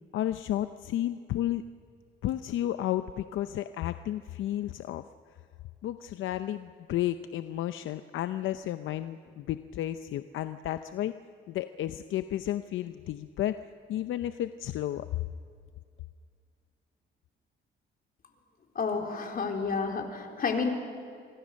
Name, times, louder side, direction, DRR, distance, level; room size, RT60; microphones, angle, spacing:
voice 1, 0.1-1.6 2.2-5.0 5.8-11.1 11.5-13.6 13.9-15.1, left 13 dB, 80° left, 11 dB, 0.7 m, -32 dB
voice 2, 18.8-20.7, left 5 dB, 45° left, 3 dB, 3.7 m, -30 dB
27.0 x 23.5 x 6.4 m, 2.2 s
cardioid pair, 90°, 20 cm